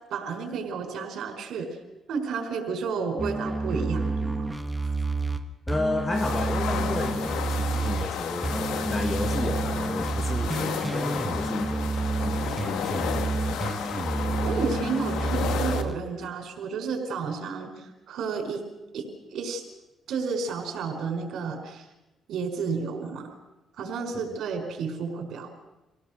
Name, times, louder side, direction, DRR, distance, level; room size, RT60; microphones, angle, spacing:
voice 1, 0.1-1.8 2.1-4.5 14.4-18.6 18.9-19.6 20.1-21.9 22.3-23.4 23.8-25.5, right 5 dB, 70° right, 4 dB, 4.9 m, -31 dB
sound 1, 3.2-8.1 8.4-15.9, right 3 dB, 10° right, 1.5 m, -29 dB
voice 2, 5.7-13.7, left 2 dB, 25° left, 5 dB, 1.9 m, -33 dB
sound 2, 6.1-15.8, left 8 dB, 85° left, 1.7 m, -32 dB
26.5 x 17.5 x 6.7 m, 1.0 s
cardioid pair, 90°, 0 cm